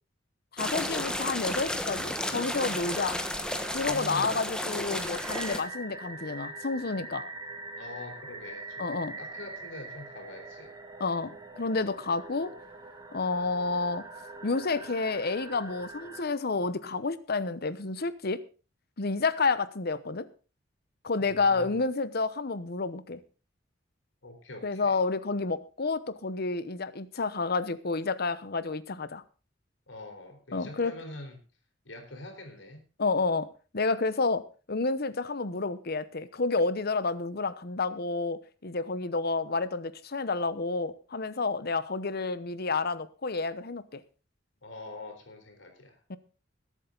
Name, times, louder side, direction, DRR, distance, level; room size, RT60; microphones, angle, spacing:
voice 1, 0.5-3.2 3.7-7.3 8.8-9.2 11.0-12.5 13.1-14.1 14.4-18.4 19.0-20.3 21.0-23.2 24.6-29.2 30.5-30.9 33.0-33.5 33.7-44.0 46.1-46.2, left 3 dB, 55° left, 0.9 m, -30 dB
sound 1, 0.6-5.6, left 1 dB, 5° left, 1.3 m, -33 dB
sound 2, 1.2-16.3, right 3 dB, 20° right, 1.8 m, -44 dB
voice 2, 3.8-4.4 7.8-10.7 21.2-21.8 24.2-25.0 29.9-31.4 31.8-32.9 34.0-34.1 44.6-46.0, left 2 dB, 85° left, 4.1 m, -44 dB
21.0 x 8.4 x 3.9 m
head